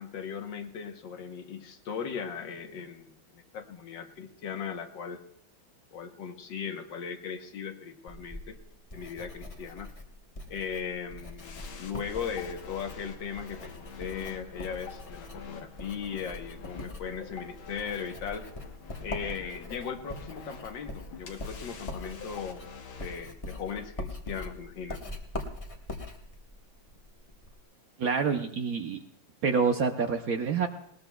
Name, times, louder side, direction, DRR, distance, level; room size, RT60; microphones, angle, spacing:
voice 1, 0.0-5.2 5.9-8.6 8.9-9.9 10.5-18.5 19.0-22.7 23.0-25.0, left 6 dB, 70° left, 6 dB, 1.7 m, -38 dB
Writing, 8.1-27.6, left 2 dB, 25° left, 0.8 m, -43 dB
sound 1, 11.4-23.2, left 6 dB, 90° left, 2.0 m, -47 dB
voice 2, 28.0-29.0 29.4-30.7, right 5 dB, 60° right, 6 dB, 1.0 m, -27 dB
19.5 x 19.5 x 2.3 m, 0.75 s
omnidirectional pair, 2.1 m